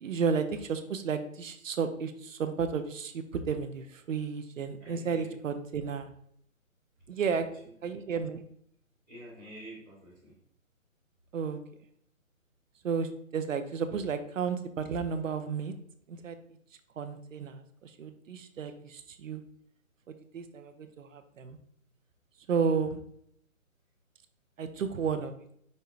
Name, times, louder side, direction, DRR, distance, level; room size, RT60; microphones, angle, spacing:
voice 1, 0.0-6.1 7.1-7.5 7.8-8.4 11.3-11.6 12.8-15.7 16.1-16.4 17.0-19.4 20.1-21.6 22.5-23.0 24.6-25.5, right 6 dB, 65° right, 9 dB, 0.6 m, -32 dB
voice 2, 4.8-5.3 7.2-7.7 9.1-10.4, right 1 dB, 5° left, -15 dB, 0.9 m, -48 dB
5.4 x 3.3 x 3.0 m, 0.68 s
hypercardioid pair, 170°, 42 cm